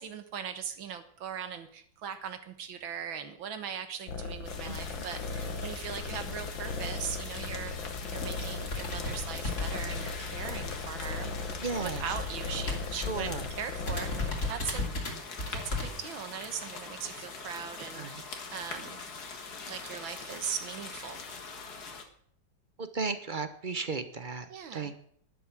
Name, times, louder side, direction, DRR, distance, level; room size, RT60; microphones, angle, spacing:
voice 1, 0.0-15.0 15.5-19.0 19.7-21.2 24.5-24.9, right 8 dB, 80° right, 9 dB, 2.1 m, -40 dB
sound 1, 4.1-14.5, left 4 dB, 75° left, 2.2 m, -38 dB
sound 2, 4.4-22.0, left 4 dB, 55° left, 2.1 m, -43 dB
sound 3, 7.0-7.3 7.8-7.9 8.0-10.4 10.7-13.3 13.6-13.7 13.9-15.9, left 2 dB, 35° left, 3.1 m, -35 dB
voice 2, 11.6-12.0 13.0-13.5 17.9-18.1 22.8-24.9, right 4 dB, 40° right, 10 dB, 0.7 m, -35 dB
11.5 x 11.0 x 7.3 m, 0.63 s
omnidirectional pair, 2.1 m